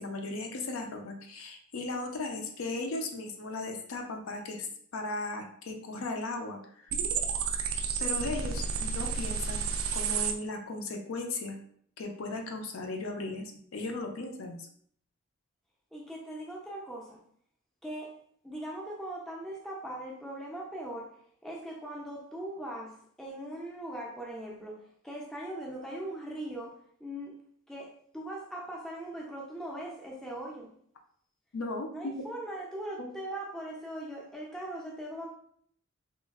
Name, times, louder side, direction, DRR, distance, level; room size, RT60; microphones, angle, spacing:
voice 1, 0.0-4.7 4.9-6.9 8.0-9.7 9.9-11.6 12.0-13.4 13.7-14.7 31.5-32.1 33.0-33.1, left 2 dB, 70° left, 3 dB, 0.4 m, -36 dB
sound 1, 6.9-10.3, right 6 dB, 70° right, 0.3 m, -31 dB
voice 2, 15.9-17.2 17.8-18.2 18.4-21.1 21.4-27.3 27.7-30.7 31.9-35.3, right 1 dB, ahead, -3 dB, 0.4 m, -40 dB
2.9 x 2.4 x 2.3 m, 0.62 s
head